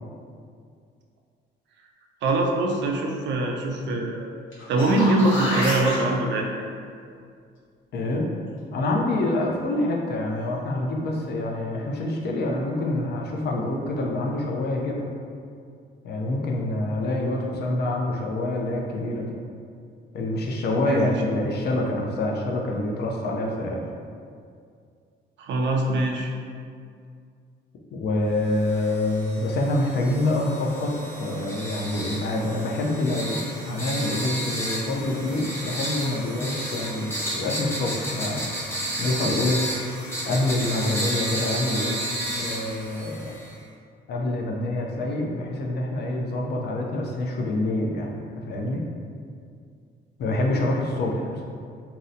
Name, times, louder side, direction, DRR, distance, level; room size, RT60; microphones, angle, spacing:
voice 1, 2.2-4.3 4.7-6.6 20.9-21.1 25.4-26.3, right 2 dB, 65° right, 1 dB, 0.4 m, -23 dB
sound 1, 4.5-6.0 10.8-10.9, left 1 dB, 80° left, 1.0 m, -28 dB
voice 2, 7.9-8.3 8.7-15.1 16.0-19.4 20.1-23.8 27.9-30.9 31.2-38.4 39.0-39.6 40.2-42.0 42.4-43.4 44.1-48.9 50.2-51.4, left 1 dB, 55° left, 0 dB, 0.4 m, -26 dB
sound 2, 28.6-43.5, right 1 dB, 10° left, 0.6 m, -32 dB
2.7 x 2.0 x 2.5 m, 2.3 s
cardioid pair, 90°, 20 cm